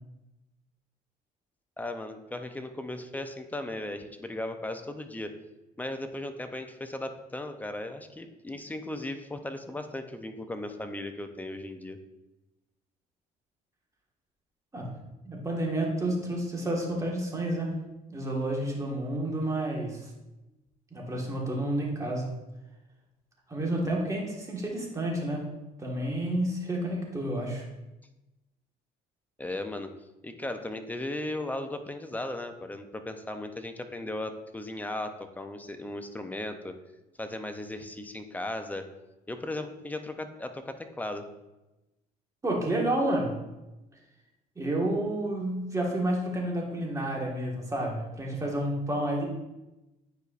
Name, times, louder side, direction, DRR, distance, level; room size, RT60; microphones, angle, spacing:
voice 1, 1.8-5.3 5.8-12.0 29.4-29.9 30.2-36.7 37.2-38.9 39.3-41.3, left 1 dB, 10° left, 7 dB, 0.6 m, -36 dB
voice 2, 15.2-17.7 18.1-20.1 20.9-22.3 23.5-25.4 25.8-27.6 42.4-43.3 44.5-49.2, right 1 dB, 20° right, -2 dB, 1.6 m, -30 dB
9.5 x 4.7 x 2.5 m, 0.99 s
cardioid pair, 110°, 17 cm